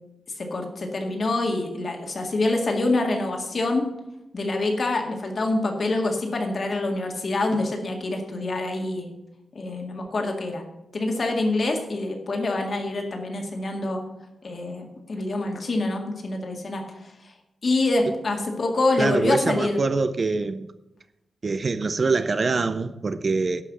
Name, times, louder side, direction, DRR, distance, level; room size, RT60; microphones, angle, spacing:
voice 1, 0.4-3.9 4.3-9.1 9.6-10.6 10.9-14.0 14.4-16.8 17.6-19.8, left 2 dB, 40° left, 1.9 m, -26 dB
voice 2, 19.0-20.7 21.4-23.6, right 4 dB, 35° right, 0.5 m, -24 dB
11.5 x 5.7 x 7.9 m
wide cardioid pair, 175°, 0 cm